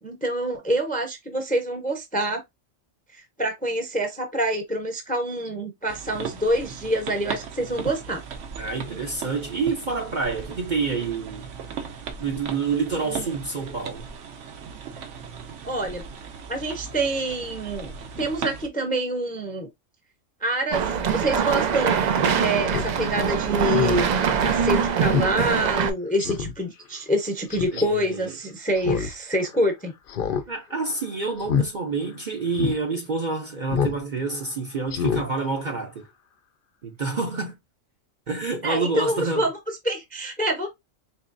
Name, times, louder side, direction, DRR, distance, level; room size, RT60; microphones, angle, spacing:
voice 1, 0.0-2.4 3.1-8.2 13.1-13.2 15.6-16.0 16.5-17.9 18.2-19.7 20.4-20.8 21.1-24.1 24.4-29.9 38.6-39.5 39.8-40.7, right 1 dB, 10° left, 0.5 m, -26 dB
sound 1, 5.9-18.7, right 6 dB, 70° right, 1.0 m, -37 dB
voice 2, 8.6-11.5 12.2-14.1 27.7-28.3 30.5-36.1 36.8-37.6 38.3-39.5, right 4 dB, 45° right, 0.7 m, -28 dB
sound 2, 20.7-25.9, right 7 dB, 90° right, 0.4 m, -23 dB
Speech synthesizer, 22.7-22.9 23.3-23.4 23.7-24.1 24.5-24.6 25.1-25.3 25.7-25.8 26.2-26.5 27.5-27.8 28.8-29.1 29.4-29.5 30.1-30.4 30.7-31.0 31.4-31.7 32.1-32.2 32.5-32.8 33.7-34.0 34.3-34.4 34.9-35.2 35.6-35.7, left 7 dB, 60° left, 0.6 m, -26 dB
4.3 x 2.9 x 2.5 m
omnidirectional pair, 1.3 m